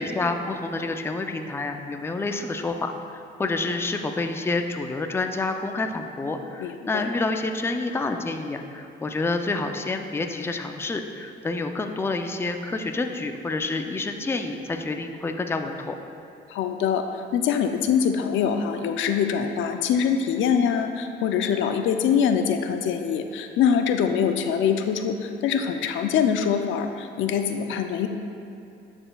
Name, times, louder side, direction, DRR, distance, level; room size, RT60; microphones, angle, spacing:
voice 1, 0.0-16.0, left 3 dB, 10° left, 5 dB, 0.4 m, -28 dB
voice 2, 6.6-7.1 16.5-28.1, left 7 dB, 75° left, 6 dB, 0.4 m, -24 dB
11.0 x 4.3 x 2.3 m, 2.6 s
cardioid pair, 90°, 20 cm